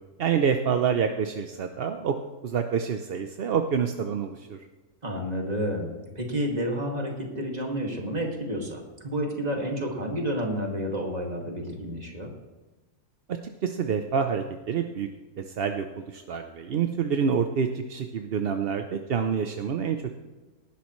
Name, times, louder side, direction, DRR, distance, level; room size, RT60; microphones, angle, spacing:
voice 1, 0.2-2.1 2.4-4.6 13.6-15.1 15.4-20.1, right 7 dB, 50° right, 6 dB, 0.7 m, -27 dB
voice 2, 5.0-12.3, equal, 25° right, 0 dB, 2.2 m, -30 dB
18.5 x 11.5 x 3.2 m, 1.2 s
omnidirectional pair, 1.6 m